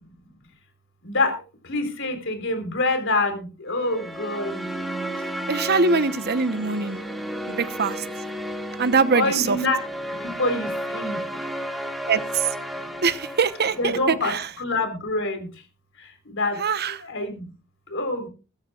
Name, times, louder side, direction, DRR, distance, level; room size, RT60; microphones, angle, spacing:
voice 1, 1.7-4.6 5.9-6.0 9.1-9.8 10.2-11.2 13.8-15.5 16.3-16.6 17.0-17.4 17.9-18.3, left 2 dB, 60° left, 7 dB, 4.1 m, -26 dB
sound 1, 3.8-14.2, right 1 dB, ahead, 2.0 m, -33 dB
voice 2, 5.5-7.0 7.5-8.0 8.8-9.6 12.1-12.5 13.0-14.5 16.6-17.0, right 4 dB, 50° right, 13 dB, 1.0 m, -23 dB
20.5 x 13.5 x 2.4 m, 0.33 s
head